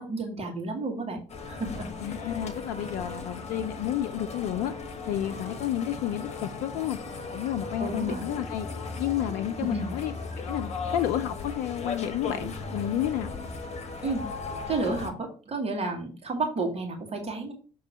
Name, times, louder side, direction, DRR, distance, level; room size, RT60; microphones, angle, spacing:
voice 1, 0.0-1.9 7.8-8.2 9.6-9.9 14.0-14.3 14.7-17.5, right 3 dB, 35° right, 2 dB, 1.9 m, -31 dB
sound 1, 1.3-15.1, left 4 dB, 40° left, 1.2 m, -37 dB
voice 2, 2.0-4.7 5.1-7.0 7.3-8.7 9.0-13.3, left 11 dB, 60° left, 9 dB, 0.5 m, -31 dB
6.7 x 3.1 x 5.9 m, 0.38 s
figure-of-eight pair, 45°, 18 cm